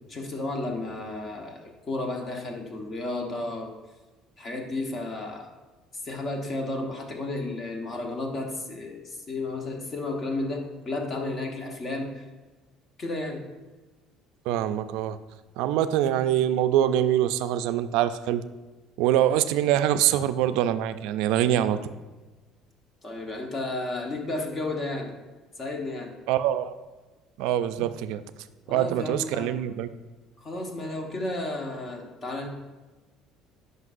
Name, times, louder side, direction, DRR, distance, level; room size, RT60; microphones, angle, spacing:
voice 1, 0.1-3.7 4.4-5.5 6.0-12.2 13.0-13.4 23.0-25.1 25.6-26.1 28.7-29.5 30.4-32.5, left 2 dB, 35° left, 2 dB, 1.1 m, -32 dB
voice 2, 14.5-15.2 15.6-18.4 19.0-21.8 26.3-26.7 27.4-28.2 28.7-29.9, right 11 dB, 80° right, 11 dB, 0.3 m, -24 dB
9.7 x 5.3 x 2.5 m, 1.2 s
cardioid pair, 125°, 0 cm